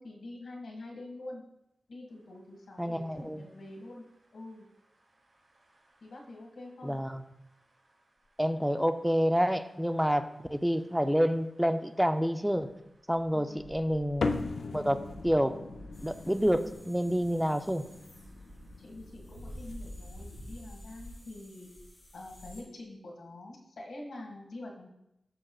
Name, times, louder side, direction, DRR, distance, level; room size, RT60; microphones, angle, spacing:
voice 1, 0.0-1.4 1.9-4.1 4.3-4.7 6.0-7.0 13.3-13.7 18.8-21.7 22.1-24.9, left 2 dB, 90° left, 1 dB, 1.8 m, -46 dB
voice 2, 2.8-3.5 6.8-7.2 8.4-12.7 13.1-14.3 14.7-15.6 16.0-17.8, equal, 5° right, 8 dB, 0.5 m, -28 dB
sound 1, 2.9-21.2, equal, 70° right, 2.2 m, -53 dB
sound 2, 14.2-20.9, left 3 dB, 65° left, 0.4 m, -39 dB
sound 3, 15.9-22.6, left 1 dB, 40° left, 2.9 m, -53 dB
12.0 x 6.4 x 2.4 m, 0.85 s
wide cardioid pair, 115°, 0 cm